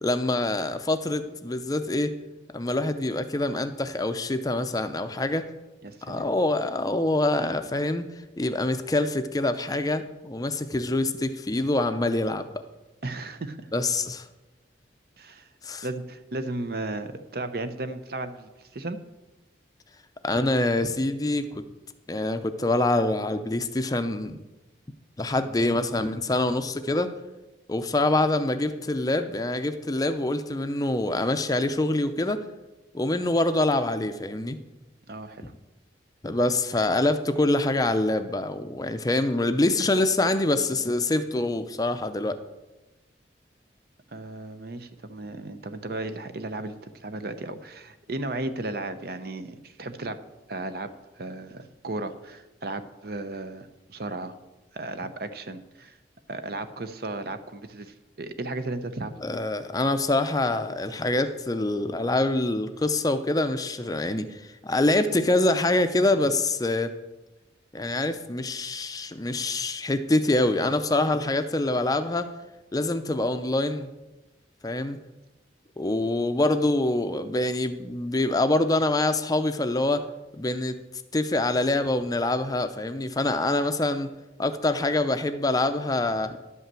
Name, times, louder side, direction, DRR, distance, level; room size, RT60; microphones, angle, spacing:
voice 1, 0.0-2.1 2.5-5.5 6.0-8.1 8.4-12.5 13.7-14.3 15.6-15.9 20.2-21.6 22.1-24.4 25.2-27.1 27.7-32.4 32.9-34.6 35.4-35.5 36.2-42.4 59.2-66.9 67.7-72.3 72.7-73.9 74.6-75.0 75.8-80.1 80.4-80.8 81.1-84.1 84.4-86.4, left 2 dB, 20° left, 9 dB, 0.5 m, -25 dB
voice 2, 5.8-6.3 13.0-13.7 15.2-15.5 15.8-19.0 35.1-35.5 44.1-50.2 50.5-54.3 54.7-56.0 56.3-59.1, right 2 dB, 55° right, 10 dB, 0.7 m, -35 dB
11.0 x 5.6 x 7.5 m, 1.1 s
head